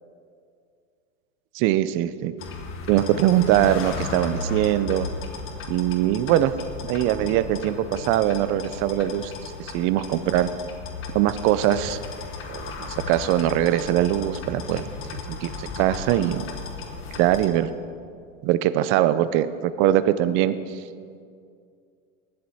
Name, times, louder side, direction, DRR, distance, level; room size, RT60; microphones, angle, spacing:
voice 1, 1.5-2.3 2.9-5.1 5.7-6.5 6.8-9.3 9.6-10.5 11.1-12.0 12.5-14.8 15.1-16.4 17.2-17.7 18.4-20.5, right 12 dB, 35° right, 14 dB, 0.5 m, -22 dB
sound 1, 2.4-17.5, left 4 dB, 30° left, 1.4 m, -35 dB
19.5 x 7.7 x 4.2 m, 2.3 s
supercardioid pair, 130°, 40 cm